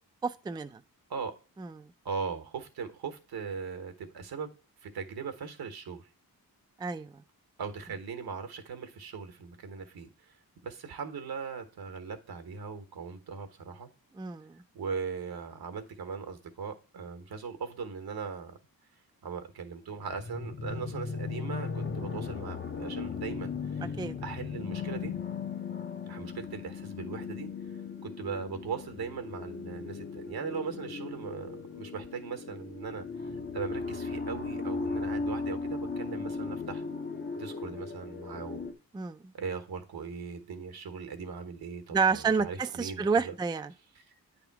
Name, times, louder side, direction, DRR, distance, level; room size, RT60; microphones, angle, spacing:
voice 1, 0.2-0.8 1.6-1.9 6.8-7.1 14.2-14.6 24.0-24.1 38.9-39.3 41.9-43.7, right 5 dB, 15° right, 0.3 m, -30 dB
voice 2, 2.0-4.5 4.8-6.1 7.6-10.4 10.6-13.9 14.7-18.6 19.2-25.2 26.1-27.5 28.0-36.8 37.4-38.7 39.3-43.3 43.9-44.0, right 5 dB, 80° right, 1.2 m, -39 dB
sound 1, 20.1-38.7, left 4 dB, 30° left, 0.6 m, -37 dB
9.3 x 3.5 x 4.6 m
wide cardioid pair, 135°, 37 cm